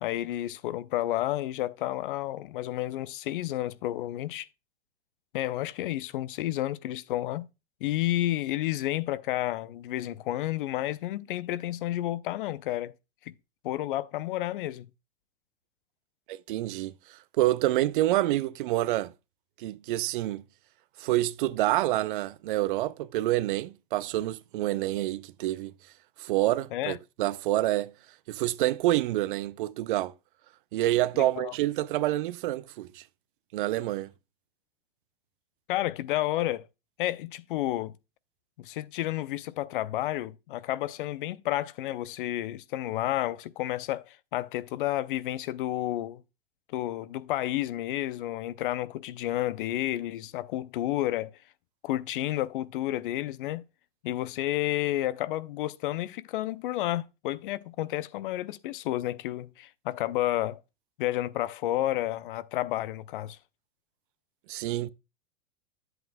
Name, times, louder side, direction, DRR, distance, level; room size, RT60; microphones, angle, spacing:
voice 1, 0.0-4.5 5.3-7.5 7.8-12.9 13.3-13.4 13.6-14.9 26.7-27.0 31.1-31.5 35.7-36.7 37.0-37.9 38.6-46.2 46.7-51.3 51.8-53.6 54.0-60.6 61.0-63.4, left 14 dB, 60° left, 0.6 m, -31 dB
voice 2, 16.3-19.1 19.6-20.4 21.0-25.7 26.2-27.9 28.3-30.1 30.7-33.0 33.5-34.1 64.5-64.9, right 15 dB, 60° right, 0.6 m, -27 dB
10.5 x 7.9 x 2.3 m
hypercardioid pair, 105°, 29 cm